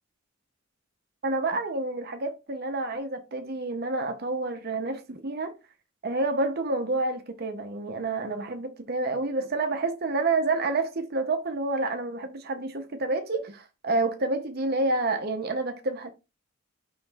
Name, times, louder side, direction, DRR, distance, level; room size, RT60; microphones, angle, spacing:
voice 1, 1.2-5.5 6.0-16.1, right 2 dB, 45° right, 0.6 m, -29 dB
4.6 x 3.0 x 3.4 m
head